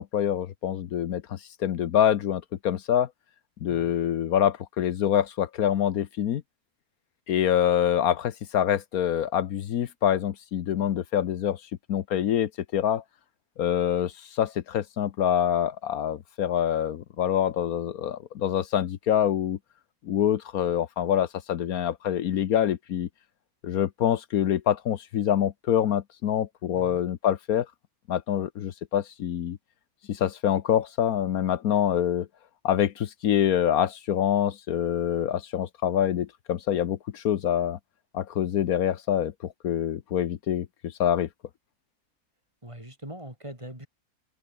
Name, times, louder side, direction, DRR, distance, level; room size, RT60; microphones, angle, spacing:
voice 1, 0.0-3.1 3.6-6.4 7.3-11.6 11.9-13.0 13.6-19.6 20.0-23.1 23.6-27.7 28.1-29.6 30.1-32.3 32.6-37.8 38.1-41.3, left 10 dB, 75° left, 1.4 m, -26 dB
voice 2, 26.7-27.0 42.6-43.9, right 1 dB, 20° right, 5.7 m, -42 dB
omnidirectional pair, 1.5 m